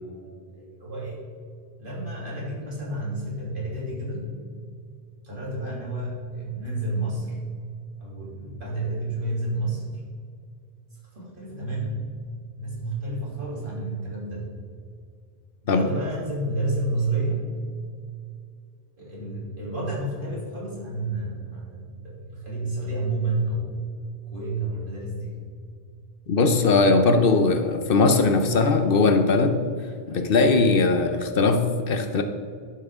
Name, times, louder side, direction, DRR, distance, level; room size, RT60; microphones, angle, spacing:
voice 1, 0.0-1.2 1.8-4.3 5.2-7.4 8.0-10.0 11.1-12.1 12.6-14.5 15.6-17.4 19.0-23.9 24.3-25.4, right 2 dB, 55° right, -6 dB, 3.1 m, -30 dB
voice 2, 26.3-29.6 30.1-32.2, left 3 dB, 65° left, 7 dB, 0.9 m, -20 dB
11.5 x 7.5 x 3.6 m, 2.2 s
omnidirectional pair, 1.1 m